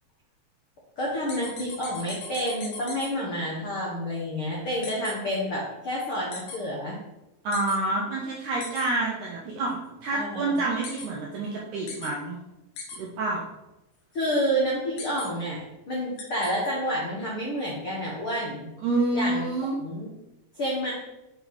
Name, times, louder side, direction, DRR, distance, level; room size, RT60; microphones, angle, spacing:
voice 1, 1.0-7.0 10.1-10.6 14.1-18.7 19.1-19.5 19.8-20.1 20.5-20.9, equal, 85° left, -4 dB, 1.2 m, -29 dB
sound 1, 1.3-3.1 4.8-5.1 6.3-6.6 7.5-7.8 8.6-8.8 10.8-11.1 11.9-12.1 12.8-13.0 15.0-15.3 16.2-16.5, left 4 dB, 65° left, 2.5 m, -38 dB
voice 2, 7.4-12.4 13.0-13.4 18.8-19.8, right 2 dB, 75° right, -2 dB, 1.8 m, -28 dB
6.8 x 4.7 x 4.0 m, 0.94 s
omnidirectional pair, 4.5 m